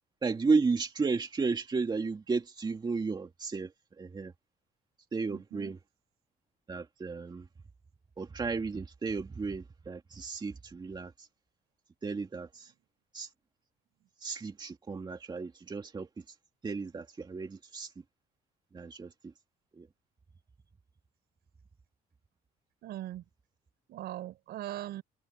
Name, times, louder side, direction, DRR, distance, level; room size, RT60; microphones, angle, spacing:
voice 1, 0.2-4.3 5.1-5.8 6.7-7.5 8.2-11.3 12.0-12.7 13.1-13.3 14.2-16.3 16.6-18.0 18.7-19.3 19.7-19.9, right 4 dB, 25° right, 2.4 m, -33 dB
voice 2, 5.3-5.7 22.8-23.2 23.9-25.0, right 13 dB, 75° right, 7.0 m, -40 dB
cardioid pair, 110°, 17 cm